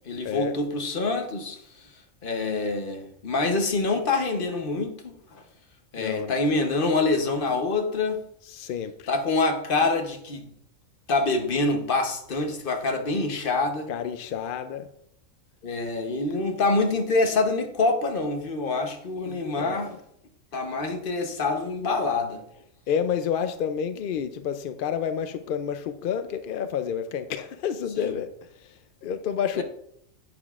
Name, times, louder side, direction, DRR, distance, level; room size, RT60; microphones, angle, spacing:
voice 1, 0.1-1.6 2.2-5.1 5.9-8.2 9.1-10.5 11.1-13.9 15.6-20.0 20.5-22.4 28.0-28.1 29.6-29.7, left 3 dB, 45° left, 1.0 m, -26 dB
voice 2, 6.0-6.4 8.5-9.1 13.9-14.9 19.6-19.9 22.9-28.3 28.6-29.6, left 8 dB, 65° left, 0.5 m, -29 dB
10.5 x 8.0 x 2.4 m
omnidirectional pair, 1.4 m